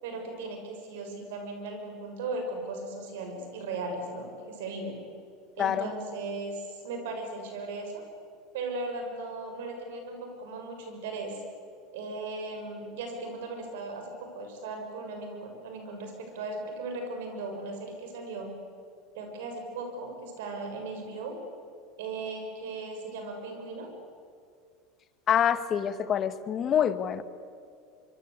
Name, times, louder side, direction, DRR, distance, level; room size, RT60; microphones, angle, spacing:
voice 1, 0.0-5.0 5.6-8.0 8.5-11.4 11.9-18.5 19.1-21.4 22.0-23.9, right 3 dB, 80° right, 4 dB, 6.7 m, -37 dB
voice 2, 5.6-5.9 25.3-27.2, left 9 dB, 40° left, 12 dB, 1.6 m, -26 dB
24.5 x 24.0 x 8.4 m, 2.3 s
hypercardioid pair, 95°, 0 cm